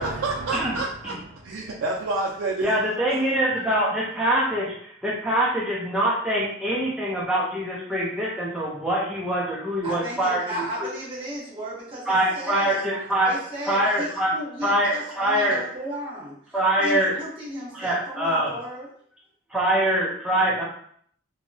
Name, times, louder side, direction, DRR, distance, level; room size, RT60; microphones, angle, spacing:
voice 1, 0.0-2.7, right 3 dB, 80° right, -3 dB, 0.4 m, -28 dB
voice 2, 2.6-10.9 12.1-13.4 13.7-14.3 14.6-15.6 16.5-17.2 17.7-18.6 19.5-20.6, right 1 dB, 5° right, -6 dB, 0.5 m, -24 dB
voice 3, 9.8-12.8 13.2-16.4 16.8-18.9, equal, 25° right, -6 dB, 0.9 m, -34 dB
2.7 x 2.1 x 2.6 m, 0.62 s
head